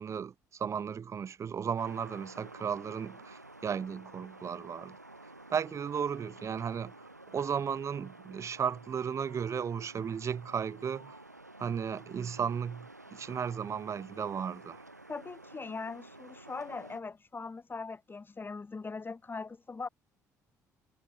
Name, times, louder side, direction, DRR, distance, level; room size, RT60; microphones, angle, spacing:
voice 1, 0.0-5.0 5.5-6.9 7.3-11.2 11.6-14.8, right 7 dB, 35° right, 0.6 m, -35 dB
sound 1, 1.8-17.0, right 2 dB, 90° right, 4.1 m, -52 dB
voice 2, 15.1-19.9, left 4 dB, 25° left, 1.9 m, -40 dB
figure-of-eight pair, 50°, 9 cm